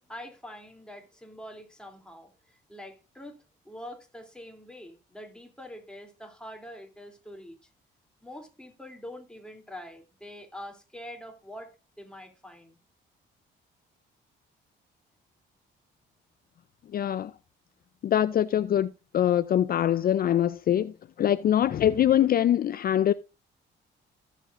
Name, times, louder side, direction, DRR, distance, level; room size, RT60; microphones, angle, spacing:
voice 1, 0.0-3.4 3.6-7.7 8.2-12.8, equal, 5° left, 3.0 m, -45 dB
voice 2, 16.9-17.3 18.0-23.1, left 10 dB, 50° left, 0.4 m, -24 dB
16.0 x 7.6 x 2.5 m
cardioid pair, 90°, 20 cm